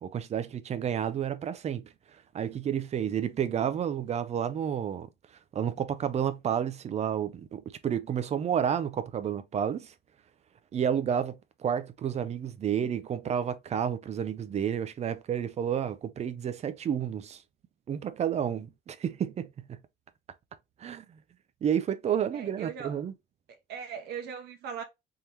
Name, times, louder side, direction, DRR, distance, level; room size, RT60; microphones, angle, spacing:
voice 1, 0.0-5.1 5.5-9.9 10.7-17.4 17.9-19.8 20.8-21.2 21.6-23.1, right 8 dB, 40° right, 0.6 m, -31 dB
voice 2, 22.3-23.0 23.7-24.8, right 7 dB, 75° right, 1.1 m, -39 dB
3.7 x 2.9 x 3.2 m
cardioid pair, 110°, 17 cm